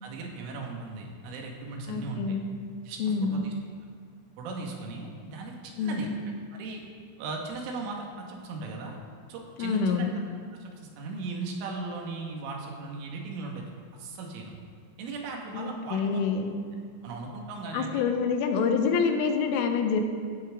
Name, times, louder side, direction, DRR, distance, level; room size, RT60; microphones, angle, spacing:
voice 1, 0.0-2.4 2.9-3.5 4.4-6.1 6.5-6.8 7.2-9.0 9.3-10.1 10.6-13.7 14.0-14.5 15.0-16.2 17.0-18.0, right 3 dB, 80° right, 0 dB, 4.3 m, -37 dB
voice 2, 1.9-2.5 3.0-3.4 5.8-6.1 9.6-10.1 15.5-16.5 17.7-20.0, left 5 dB, 90° left, 5 dB, 3.7 m, -27 dB
16.5 x 14.0 x 3.8 m, 2.1 s
omnidirectional pair, 5.6 m